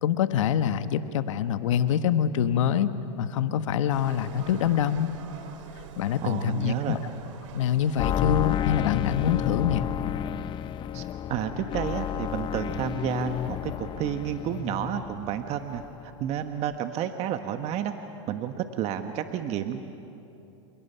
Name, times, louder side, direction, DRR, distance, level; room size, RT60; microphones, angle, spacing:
voice 1, 0.0-5.1 6.0-7.0 7.5-9.9, left 9 dB, 75° left, 11 dB, 1.3 m, -25 dB
sound 1, 3.9-9.5, right 6 dB, 75° right, 2.4 m, -46 dB
voice 2, 6.2-7.0 10.9-17.9 18.3-19.8, right 10 dB, 40° right, 7 dB, 1.2 m, -31 dB
sound 2, 8.0-15.5 15.7-16.4 16.7-16.8, left 10 dB, 30° left, 0.7 m, -31 dB
29.0 x 28.5 x 5.7 m, 2.9 s
hypercardioid pair, 115°, 16 cm